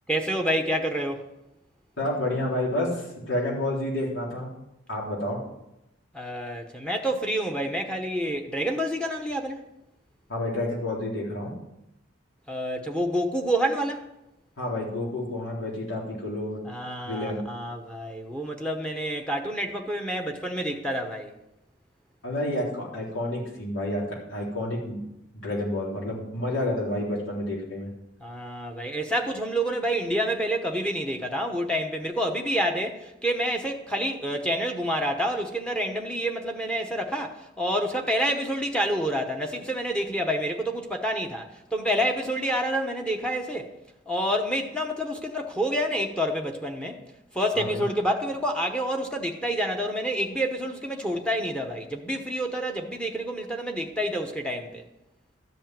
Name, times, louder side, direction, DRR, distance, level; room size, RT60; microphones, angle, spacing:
voice 1, 0.1-1.3 6.1-9.6 12.5-14.0 16.6-21.3 28.2-43.7 44.1-47.0 47.3-54.8, equal, 5° left, 1.0 m, -28 dB
voice 2, 2.0-4.5 4.9-5.4 10.3-11.5 14.6-16.6 17.0-17.4 22.2-24.0 24.3-25.0 25.4-27.9 47.5-47.8, left 1 dB, 85° left, 3.9 m, -29 dB
13.5 x 5.4 x 9.0 m
head